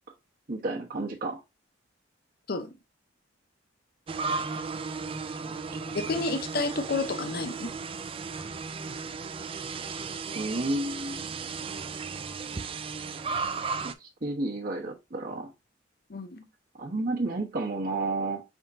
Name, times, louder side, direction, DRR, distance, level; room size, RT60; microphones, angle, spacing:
voice 1, 0.5-1.4 10.3-11.2 13.8-15.5 16.8-18.4, right 2 dB, 50° right, 1.0 m, -31 dB
sound 1, 4.1-13.9, right 4 dB, 30° right, 0.3 m, -35 dB
voice 2, 5.9-7.7 16.1-16.5, left 3 dB, 50° left, 0.7 m, -30 dB
5.7 x 3.6 x 2.6 m
head